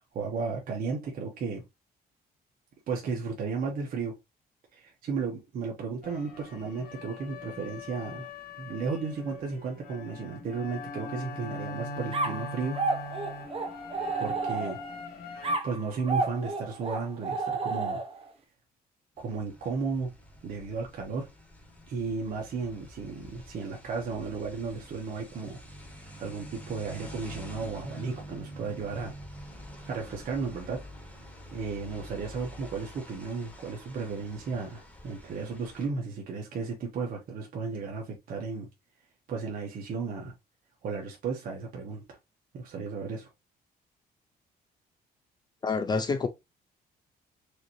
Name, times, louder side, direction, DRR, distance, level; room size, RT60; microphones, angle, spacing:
voice 1, 0.1-1.6 2.9-4.1 4.7-8.3 8.6-12.8 14.2-14.8 15.3-18.0 19.2-20.1 20.4-21.3 21.9-25.6 25.9-29.1 29.9-30.8 31.5-38.7 39.3-40.3 40.8-42.0 42.5-43.3, right 4 dB, 60° right, 1.3 m, -34 dB
sound 1, 6.0-15.6, left 2 dB, 65° left, 1.4 m, -41 dB
sound 2, 12.1-15.0 15.4-18.3, right 3 dB, 35° right, 0.9 m, -31 dB
sound 3, 19.2-35.9, equal, 10° left, 1.5 m, -47 dB
voice 2, 45.6-46.3, left 4 dB, 25° left, 0.4 m, -27 dB
4.9 x 2.8 x 3.0 m
cardioid pair, 135°, 16 cm